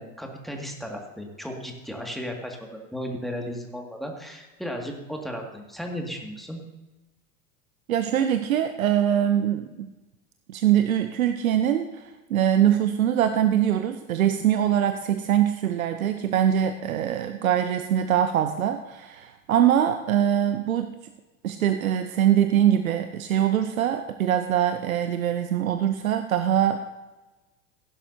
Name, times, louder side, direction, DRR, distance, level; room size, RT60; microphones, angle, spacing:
voice 1, 0.0-6.6, equal, ahead, 1 dB, 2.1 m, -35 dB
voice 2, 7.9-9.9 10.5-20.9 21.4-26.9, right 10 dB, 75° right, 9 dB, 0.8 m, -23 dB
15.5 x 11.5 x 2.8 m, 1.1 s
figure-of-eight pair, 85°, 41 cm